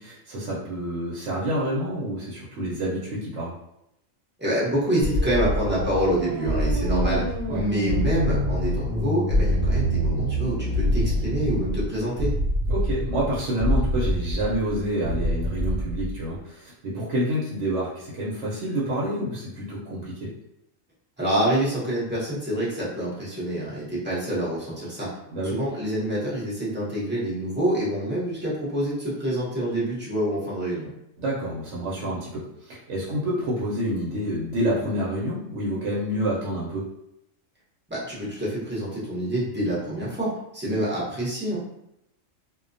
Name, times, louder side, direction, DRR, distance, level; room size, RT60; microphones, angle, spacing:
voice 1, 0.0-3.5 7.5-7.6 12.7-20.3 25.3-25.6 31.2-36.9, right 1 dB, 65° right, -5 dB, 0.9 m, -28 dB
voice 2, 4.4-7.2 7.5-12.3 21.2-25.1 25.4-30.9 37.9-40.3 40.5-41.6, right 1 dB, 10° right, -7 dB, 0.5 m, -27 dB
sound 1, 4.7-11.8, right 1 dB, 85° right, 1.1 m, -30 dB
sound 2, 5.0-16.4, left 1 dB, 75° left, 1.0 m, -26 dB
2.3 x 2.1 x 2.5 m, 0.83 s
omnidirectional pair, 1.4 m